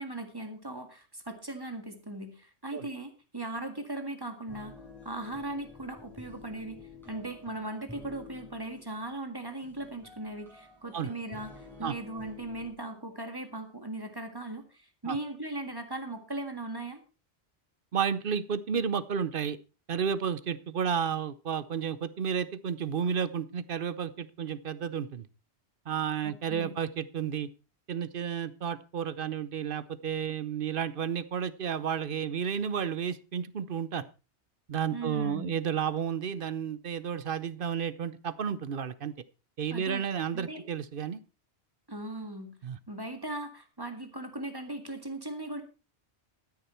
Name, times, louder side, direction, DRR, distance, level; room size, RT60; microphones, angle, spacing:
voice 1, 0.0-4.7 5.0-17.0 26.2-26.8 34.9-35.5 39.7-40.0 40.3-40.6 41.9-42.5 42.9-45.6, right 2 dB, 20° right, 6 dB, 1.8 m, -38 dB
sound 1, 4.5-12.7, left 3 dB, ahead, 6.0 m, -51 dB
voice 2, 17.9-19.6 19.9-25.3 25.9-27.5 27.9-34.1 34.7-39.1 39.6-41.2 42.6-42.8, right 7 dB, 55° right, 15 dB, 0.9 m, -32 dB
13.0 x 10.0 x 4.4 m, 0.33 s
omnidirectional pair, 1.2 m